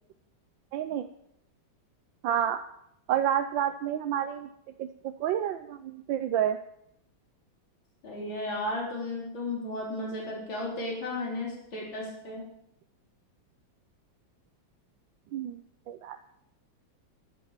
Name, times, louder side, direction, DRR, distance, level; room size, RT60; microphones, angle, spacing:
voice 1, 0.7-1.1 2.2-2.6 3.1-4.5 4.8-6.6 15.3-15.6 15.9-16.2, right 10 dB, 75° right, 8 dB, 1.4 m, -29 dB
voice 2, 8.0-12.4, left 2 dB, 80° left, -3 dB, 4.6 m, -34 dB
12.5 x 10.5 x 7.3 m, 0.76 s
omnidirectional pair, 2.1 m